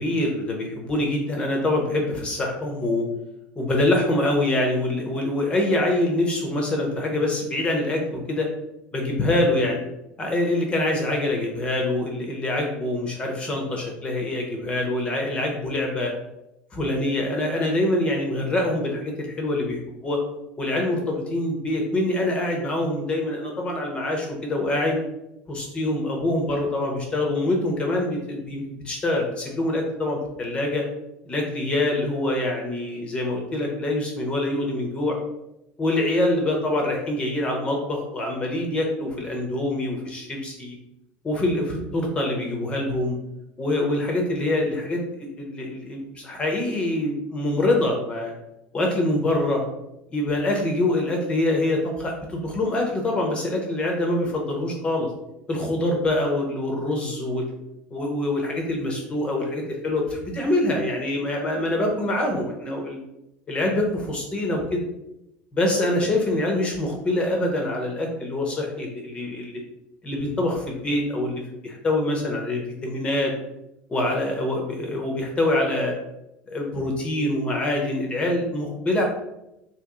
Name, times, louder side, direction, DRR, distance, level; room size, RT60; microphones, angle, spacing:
voice 1, 0.0-3.1 3.6-8.5 8.9-9.8 10.2-16.1 16.7-20.2 20.6-25.0 25.5-30.8 31.3-35.2 35.8-40.8 41.2-43.2 43.6-48.3 48.7-49.6 50.1-55.1 55.5-57.4 57.9-63.0 63.5-64.9 65.5-69.6 70.0-73.3 73.9-75.9 76.5-79.0, left 1 dB, 25° left, 1 dB, 0.7 m, -25 dB
3.0 x 3.0 x 3.6 m, 0.87 s
cardioid pair, 135°, 5 cm